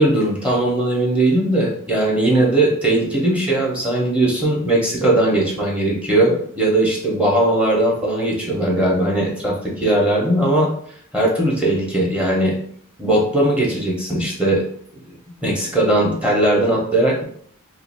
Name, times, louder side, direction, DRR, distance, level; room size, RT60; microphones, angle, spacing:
voice 1, 0.0-10.7 11.1-12.6 13.0-14.6 15.1-15.2 15.4-17.2, right 1 dB, 5° right, -3 dB, 0.7 m, -19 dB
2.7 x 2.4 x 4.2 m, 0.62 s
head